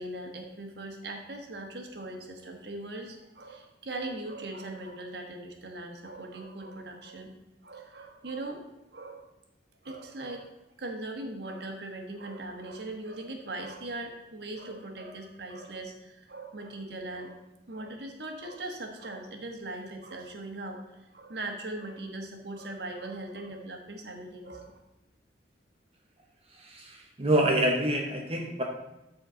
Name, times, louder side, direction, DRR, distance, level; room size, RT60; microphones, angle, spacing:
voice 1, 0.0-7.3 7.6-8.6 8.9-9.2 9.8-10.5 10.8-24.8, right 2 dB, 65° right, 3 dB, 1.3 m, -40 dB
voice 2, 26.6-28.6, right 1 dB, 35° right, 1 dB, 0.9 m, -27 dB
13.0 x 4.3 x 3.8 m, 0.95 s
head